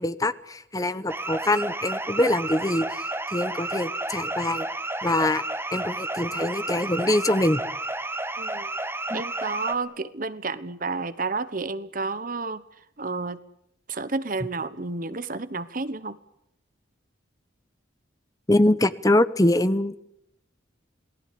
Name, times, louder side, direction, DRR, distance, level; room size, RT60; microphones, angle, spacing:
voice 1, 0.0-4.7 5.0-5.4 5.7-7.6 9.1-9.2 18.5-20.1, left 1 dB, 20° left, 14 dB, 0.9 m, -24 dB
sound 1, 1.1-9.7, right 2 dB, 10° right, 1.7 m, -31 dB
voice 2, 8.4-8.7 9.1-12.6 13.0-13.4 13.9-16.2, right 3 dB, 45° right, 15 dB, 1.1 m, -31 dB
28.5 x 19.0 x 8.5 m, 0.79 s
head